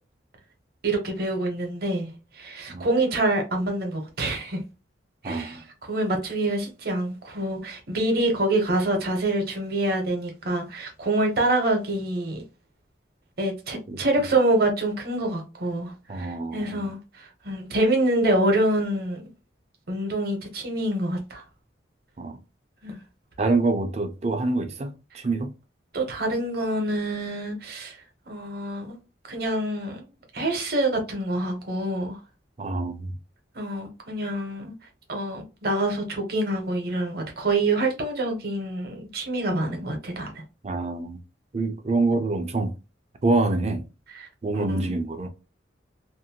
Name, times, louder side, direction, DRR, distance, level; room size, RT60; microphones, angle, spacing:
voice 1, 0.8-2.1 2.4-4.6 5.2-12.4 13.4-19.3 19.9-21.4 22.8-23.0 25.9-28.0 28.3-29.0 29.3-30.1 30.3-32.2 33.5-34.7 35.1-40.3 44.1-45.0, right 1 dB, 55° right, 0.8 m, -26 dB
voice 2, 5.2-5.6 13.9-14.0 16.1-16.9 22.2-22.4 23.4-25.5 32.6-33.1 40.6-41.2 41.5-42.8 43.2-43.9 44.4-45.3, right 3 dB, 35° right, 0.4 m, -26 dB
2.6 x 2.1 x 2.8 m
head